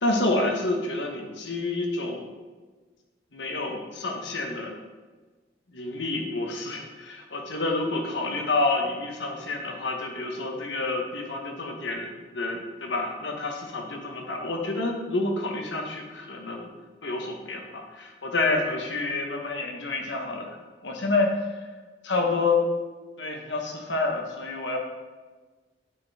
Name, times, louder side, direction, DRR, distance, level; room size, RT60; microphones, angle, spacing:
voice 1, 0.0-2.3 3.3-4.8 5.7-16.7 17.0-21.3 22.0-22.6 23.2-24.8, left 2 dB, 85° left, 2 dB, 1.1 m, -28 dB
8.7 x 4.4 x 3.5 m, 1.3 s
head